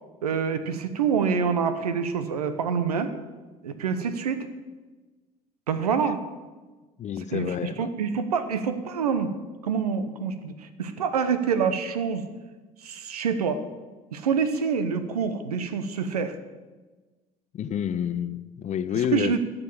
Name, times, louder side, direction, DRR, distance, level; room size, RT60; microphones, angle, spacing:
voice 1, 0.2-3.1 3.6-4.5 5.7-6.2 7.3-9.3 9.6-12.2 12.8-13.6 14.1-16.4 19.1-19.4, right 6 dB, 85° right, 11 dB, 0.8 m, -26 dB
voice 2, 7.0-7.9 17.5-19.4, left 9 dB, 40° left, 14 dB, 0.6 m, -29 dB
14.0 x 5.5 x 7.0 m, 1.3 s
hypercardioid pair, 60°, 19 cm